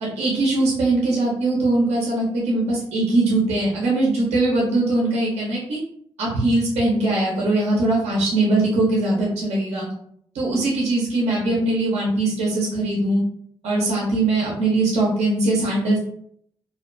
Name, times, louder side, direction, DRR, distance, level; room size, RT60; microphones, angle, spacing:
voice 1, 0.0-5.8 6.2-9.9 10.3-13.2 13.6-16.0, right 2 dB, 85° right, -4 dB, 0.6 m, -21 dB
2.3 x 2.2 x 2.5 m, 0.66 s
supercardioid pair, 50°, 11 cm